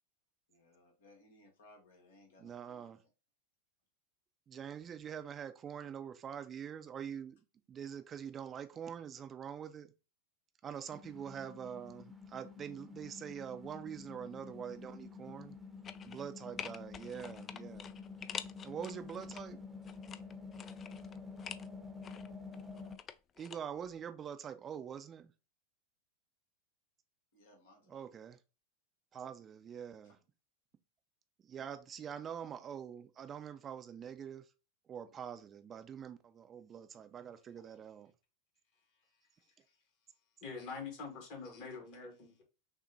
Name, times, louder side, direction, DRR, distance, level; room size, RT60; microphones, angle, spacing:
voice 1, 0.5-3.1 27.3-28.1 30.0-30.2, left 1 dB, 70° left, 1.2 m, -63 dB
voice 2, 2.4-3.0 4.5-7.4 7.7-9.9 10.6-15.6 16.1-17.9 18.6-19.6 23.4-25.3 27.9-28.4 29.1-30.2 31.4-34.5 34.9-38.1, right 8 dB, 30° right, 0.5 m, -45 dB
sound 1, 10.9-23.0, left 4 dB, 5° right, 0.8 m, -49 dB
sound 2, 15.8-16.3 16.6-19.4 19.8-21.7 22.0-23.6 23.9-24.0, left 7 dB, 30° left, 0.3 m, -47 dB
voice 3, 39.4-39.8 40.4-42.4, left 4 dB, 50° left, 1.7 m, -46 dB
6.0 x 2.1 x 2.7 m
figure-of-eight pair, 90°, 0 cm